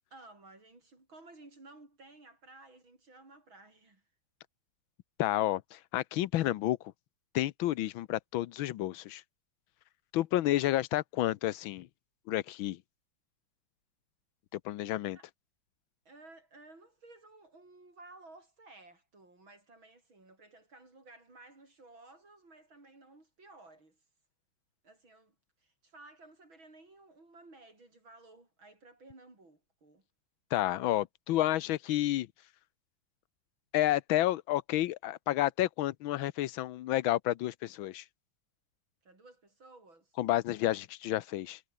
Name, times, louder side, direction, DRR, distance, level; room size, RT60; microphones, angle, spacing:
voice 1, 0.1-4.0 15.1-15.3 16.1-24.0 24.8-30.1 39.0-40.2, right 2 dB, 75° right, 7.5 m, -56 dB
voice 2, 5.2-6.8 7.3-9.2 10.1-11.9 12.3-12.8 14.5-15.2 30.5-32.3 33.7-38.0 40.2-41.6, left 14 dB, 80° left, 1.5 m, -30 dB
omnidirectional pair, 2.2 m